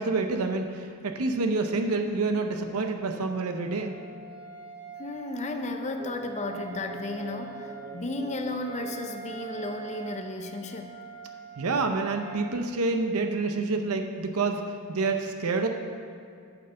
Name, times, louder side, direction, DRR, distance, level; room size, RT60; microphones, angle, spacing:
voice 1, 0.0-3.9 11.6-14.6 14.9-15.7, right 3 dB, 75° right, 5 dB, 0.7 m, -28 dB
Wind instrument woodwind instrument, 2.5-12.6, right 6 dB, 80° left, 2.6 m, -45 dB
voice 2, 5.0-10.9, left 2 dB, 30° left, 5 dB, 0.6 m, -34 dB
sound 1, 6.0-10.7, right 5 dB, 25° right, 0.3 m, -44 dB
8.8 x 5.6 x 6.8 m, 2.4 s
head